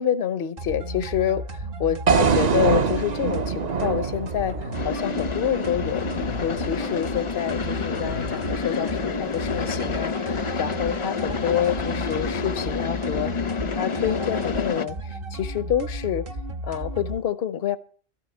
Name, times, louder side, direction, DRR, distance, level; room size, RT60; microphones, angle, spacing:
voice 1, 0.0-13.3 13.7-16.2 16.6-17.8, left 10 dB, 70° left, 1.0 m, -27 dB
sound 1, 0.6-17.2, right 1 dB, 60° right, 1.4 m, -34 dB
sound 2, 2.1-6.2, right 6 dB, 45° right, 0.8 m, -24 dB
sound 3, 4.7-14.8, left 5 dB, 35° left, 0.6 m, -29 dB
13.0 x 7.8 x 8.1 m
omnidirectional pair, 1.0 m